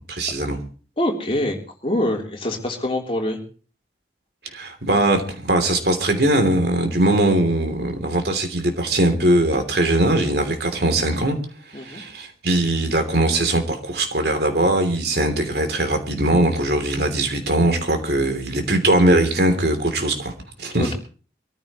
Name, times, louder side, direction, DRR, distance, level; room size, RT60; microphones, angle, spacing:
voice 1, 0.1-0.6 4.5-11.4 11.7-20.3 20.6-20.9, right 1 dB, 65° right, 6 dB, 3.1 m, -20 dB
voice 2, 1.0-1.6 1.8-3.4 11.7-12.0 20.8-20.9, left 1 dB, 30° left, 1 dB, 3.4 m, -24 dB
24.5 x 14.5 x 3.1 m, 0.39 s
head